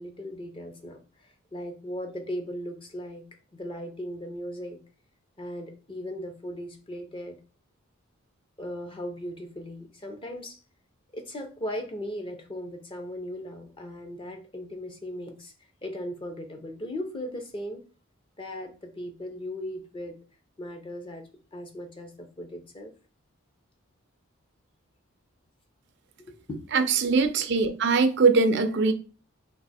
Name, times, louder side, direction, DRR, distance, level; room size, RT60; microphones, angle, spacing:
voice 1, 0.0-3.2 3.5-4.8 5.4-7.4 8.6-10.6 11.1-15.5 15.8-17.8 18.4-20.2 20.6-22.9 26.3-26.6, equal, 25° left, 0.6 m, -37 dB
voice 2, 26.7-28.9, right 4 dB, 50° right, 0.4 m, -22 dB
3.4 x 2.8 x 4.1 m
head